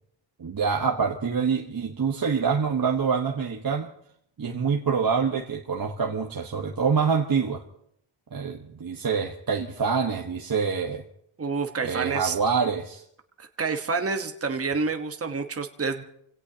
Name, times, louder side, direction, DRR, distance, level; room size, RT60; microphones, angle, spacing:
voice 1, 0.4-3.9 4.4-7.6 8.3-11.0 11.8-13.0, right 6 dB, 45° right, 1 dB, 1.3 m, -26 dB
voice 2, 11.4-12.4 13.4-16.0, right 4 dB, 30° right, 5 dB, 1.2 m, -28 dB
29.0 x 17.0 x 2.9 m, 0.72 s
cardioid pair, 90°, 49 cm